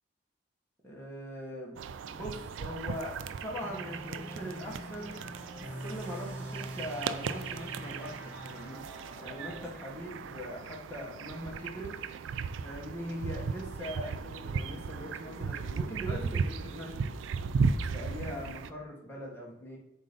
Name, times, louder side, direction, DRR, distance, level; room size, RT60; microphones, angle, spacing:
voice 1, 0.8-1.8 2.0-3.2 3.4-5.1 5.8-8.8 9.2-12.0 12.6-17.1 17.8-19.8, equal, 10° left, -3 dB, 1.3 m, -41 dB
sound 1, 1.8-18.7, right 5 dB, 80° right, 0.3 m, -36 dB
sound 2, 3.6-9.8, equal, 10° right, 1.1 m, -44 dB
7.5 x 2.8 x 5.1 m, 0.83 s
head